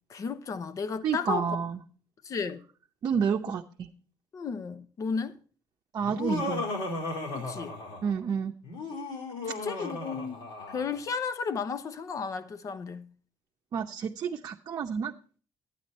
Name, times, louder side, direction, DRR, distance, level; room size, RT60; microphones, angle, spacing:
voice 1, 0.1-1.5 2.2-2.6 4.3-5.4 7.3-7.7 9.4-13.1, left 5 dB, 45° left, 1.0 m, -34 dB
voice 2, 1.0-1.8 3.0-3.9 5.9-6.7 8.0-8.5 13.7-15.1, right 7 dB, 50° right, 0.7 m, -30 dB
Laughter, 6.0-8.2 8.6-11.0, left 2 dB, 75° left, 4.1 m, -35 dB
11.0 x 9.3 x 4.2 m
cardioid pair, 115°, 8 cm